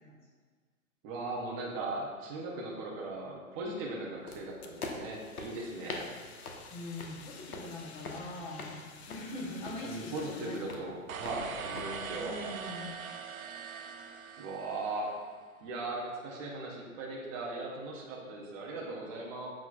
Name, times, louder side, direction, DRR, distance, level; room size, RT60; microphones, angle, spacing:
voice 1, 1.0-6.0 9.8-12.3 14.4-15.1 15.6-19.5, right 2 dB, 15° right, -2 dB, 0.5 m, -38 dB
sound 1, 4.3-11.9, left 3 dB, 80° left, 1.2 m, -45 dB
Fire, 4.6-10.8, left 5 dB, 50° left, 0.8 m, -52 dB
voice 2, 6.7-10.9 12.2-13.0, left 1 dB, 15° left, -2 dB, 0.9 m, -42 dB
sound 2, 11.1-15.3, right 6 dB, 70° right, 0.8 m, -42 dB
7.9 x 6.1 x 2.4 m, 1.5 s
hypercardioid pair, 140°, 43 cm